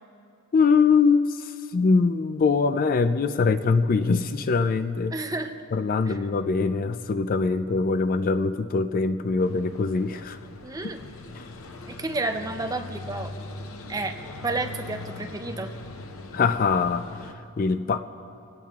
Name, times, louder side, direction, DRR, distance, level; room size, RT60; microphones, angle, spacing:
voice 1, 0.5-5.1 5.7-10.4 11.4-11.5 16.3-18.0, left 4 dB, 40° left, 11 dB, 0.3 m, -23 dB
voice 2, 5.1-5.6 6.1-6.2 10.6-11.0 11.9-13.3 13.9-14.2 14.4-15.7, right 3 dB, 15° right, 6 dB, 0.6 m, -31 dB
sound 1, 9.4-17.3, left 2 dB, 65° left, 0.8 m, -40 dB
22.0 x 17.5 x 2.4 m, 2.6 s
head